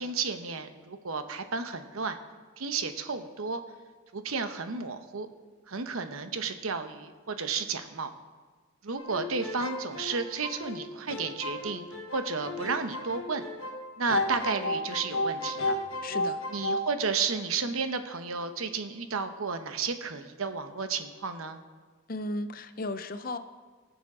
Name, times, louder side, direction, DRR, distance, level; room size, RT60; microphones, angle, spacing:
voice 1, 0.0-2.2 2.6-3.6 4.1-5.3 5.7-8.1 8.8-11.9 12.1-13.4 14.0-15.8 16.5-21.6, right 5 dB, 85° right, 8 dB, 0.9 m, -32 dB
sound 1, 9.0-13.8 14.1-16.9, left 1 dB, 80° left, 1.5 m, -33 dB
voice 2, 16.0-16.4 22.1-23.4, left 2 dB, 40° left, 10 dB, 0.6 m, -35 dB
18.5 x 7.0 x 4.9 m, 1.4 s
head